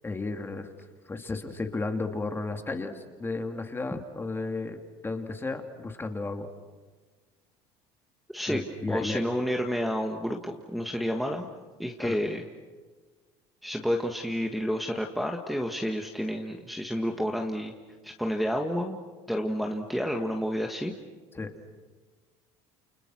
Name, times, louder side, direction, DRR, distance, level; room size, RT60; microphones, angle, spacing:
voice 1, 0.0-0.7 1.1-6.5 8.5-9.2 12.0-12.2 21.3-21.5, left 3 dB, 15° left, 5 dB, 2.6 m, -33 dB
voice 2, 8.3-11.5 11.8-12.4 13.6-17.7 18.0-19.0 19.3-20.9, equal, ahead, 1 dB, 1.8 m, -30 dB
29.5 x 29.0 x 6.3 m, 1.4 s
supercardioid pair, 105°, 13 cm